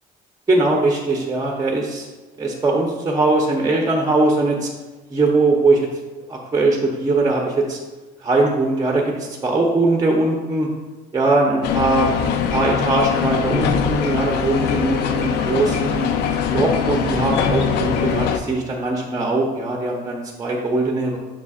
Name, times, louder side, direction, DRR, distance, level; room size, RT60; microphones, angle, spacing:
voice 1, 0.5-2.1 2.4-4.7 5.1-5.9 6.3-7.8 8.2-10.7 11.1-12.1 12.5-16.0 16.5-21.2, right 2 dB, 20° right, 0 dB, 0.8 m, -20 dB
sound 1, 11.6-18.4, left 7 dB, 85° left, 0.5 m, -22 dB
7.0 x 6.1 x 2.4 m, 1.2 s
cardioid pair, 110°, 17 cm